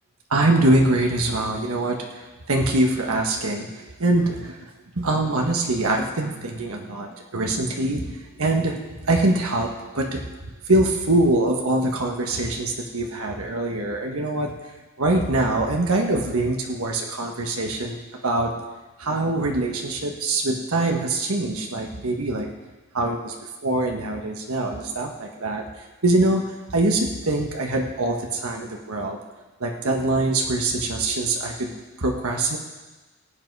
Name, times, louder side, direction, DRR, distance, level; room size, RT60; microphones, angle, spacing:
voice 1, 0.3-2.2 2.5-4.6 4.9-10.2 10.7-14.5 15.0-18.0 18.2-18.5 19.0-22.6 22.9-23.3 23.6-25.6 26.0-26.4 26.7-29.2 29.6-31.7 32.0-32.6, right 2 dB, 85° right, 1 dB, 1.5 m, -23 dB
19.0 x 8.1 x 4.8 m, 1.2 s
head